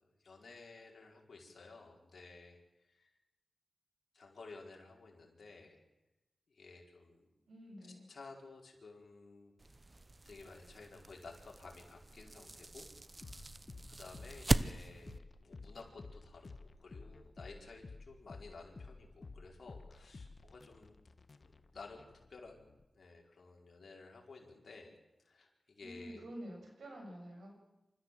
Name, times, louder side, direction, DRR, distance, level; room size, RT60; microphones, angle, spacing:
voice 1, 0.0-2.6 2.9-3.1 4.1-5.8 6.5-7.3 7.8-9.5 10.2-13.5 14.0-16.5 16.8-19.1 19.3-21.0 21.3-22.6 22.9-24.9 25.2-26.3, left 3 dB, 65° left, 0 dB, 4.9 m, -54 dB
voice 2, 7.5-8.1 25.8-27.5, equal, 85° right, 1 dB, 7.0 m, -49 dB
sound 1, 9.6-15.2, right 2 dB, 30° right, 0.8 m, -39 dB
sound 2, 13.2-22.8, left 3 dB, 50° left, 1.3 m, -53 dB
27.5 x 14.0 x 7.8 m, 0.99 s
wide cardioid pair, 70°, 0 cm